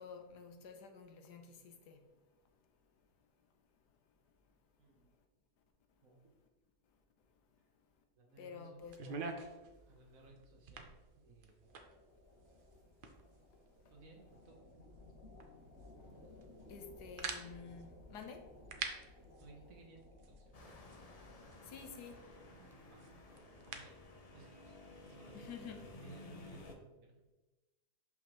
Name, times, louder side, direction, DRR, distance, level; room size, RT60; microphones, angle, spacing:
voice 1, 0.0-2.0 8.4-9.3 16.7-18.5 21.6-22.3 25.3-25.9, left 5 dB, 85° left, 6 dB, 1.4 m, -51 dB
voice 2, 4.8-5.1 6.0-6.3 8.2-8.8 9.9-11.6 13.9-14.9 19.4-20.5 22.9-23.0 23.3-24.8 25.1-27.3, right 3 dB, 55° right, 1 dB, 1.4 m, -60 dB
sound 1, 8.8-24.0, right 4 dB, 80° right, 0.4 m, -50 dB
sound 2, 11.6-21.5, left 2 dB, 45° left, 1.5 m, -59 dB
sound 3, 20.5-26.7, left 2 dB, 60° left, 0.4 m, -54 dB
6.1 x 5.6 x 3.0 m, 1.1 s
omnidirectional pair, 1.7 m